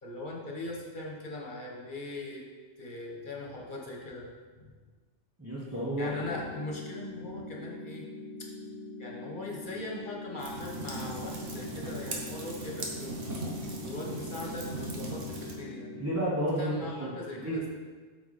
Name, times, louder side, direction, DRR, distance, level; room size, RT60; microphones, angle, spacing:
voice 1, 0.0-2.4 2.8-4.3 6.0-8.0 8.4-8.5 9.0-13.2 13.8-15.9 16.6-17.7, left 2 dB, 45° left, -1 dB, 1.5 m, -40 dB
voice 2, 5.4-6.1 15.9-17.1 17.4-17.7, right 1 dB, 15° right, -8 dB, 1.2 m, -31 dB
sound 1, 6.0-16.0, left 2 dB, 90° left, 1.3 m, -43 dB
sound 2, 10.4-15.5, right 2 dB, 85° right, 1.5 m, -38 dB
8.2 x 6.1 x 4.2 m, 1.4 s
omnidirectional pair, 1.2 m